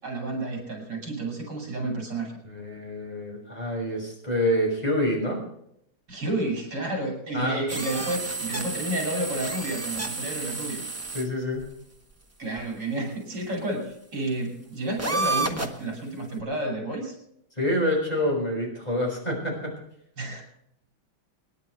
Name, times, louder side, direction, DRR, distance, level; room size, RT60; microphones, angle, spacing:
voice 1, 0.0-2.3 6.1-10.8 12.4-17.1 20.2-20.4, right 1 dB, 60° right, 1 dB, 6.6 m, -31 dB
voice 2, 2.4-5.4 7.3-7.6 11.1-11.7 17.6-19.8, left 1 dB, 20° left, -1 dB, 6.2 m, -27 dB
sound 1, 7.7-11.3 11.6-11.7 12.6-12.7 15.0-15.8, right 3 dB, 10° right, 0.9 m, -30 dB
27.5 x 10.5 x 3.3 m, 0.76 s
omnidirectional pair, 2.2 m